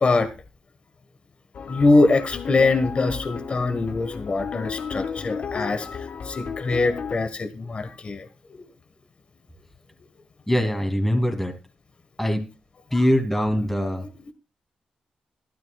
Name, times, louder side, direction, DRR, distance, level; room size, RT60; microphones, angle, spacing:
sound 1, 1.5-7.1, left 5 dB, 65° left, 0.9 m, -33 dB
voice 1, 1.7-8.6 12.9-13.0, left 3 dB, 45° left, 9 dB, 1.6 m, -23 dB
voice 2, 10.5-11.5 12.2-12.4 12.9-14.0, equal, 10° left, 5 dB, 2.8 m, -22 dB
13.0 x 12.0 x 2.4 m, 0.30 s
cardioid pair, 55°, 3 cm